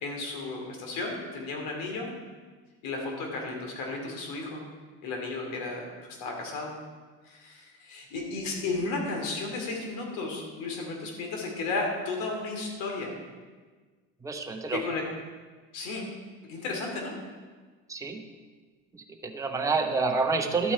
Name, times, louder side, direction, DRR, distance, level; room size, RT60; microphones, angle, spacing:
voice 1, 0.0-2.1 2.8-4.6 5.0-5.9 6.2-6.7 7.3-13.1 14.7-15.0 15.7-16.1 16.4-17.2, left 3 dB, 75° left, 1 dB, 3.0 m, -33 dB
voice 2, 14.2-14.8 17.9-18.2 18.9-20.7, right 4 dB, 10° right, 3 dB, 0.8 m, -28 dB
12.0 x 8.5 x 4.3 m, 1.4 s
cardioid pair, 145°, 33 cm